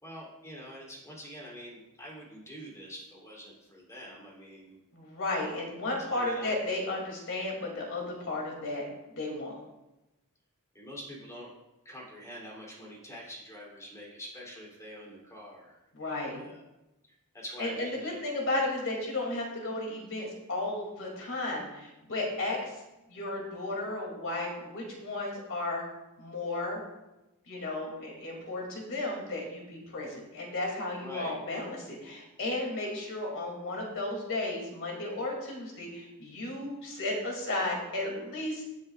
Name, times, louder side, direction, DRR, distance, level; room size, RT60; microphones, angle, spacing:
voice 1, 0.0-4.8 6.1-6.5 10.7-11.5 11.8-16.6 17.0-18.2 31.0-31.3, equal, 15° left, -4 dB, 3.1 m, -45 dB
voice 2, 4.9-9.6 15.9-16.4 17.6-22.8 23.1-25.8 26.2-26.8 27.5-38.6, left 2 dB, 60° left, -1 dB, 2.6 m, -34 dB
16.5 x 7.5 x 2.4 m, 0.97 s
head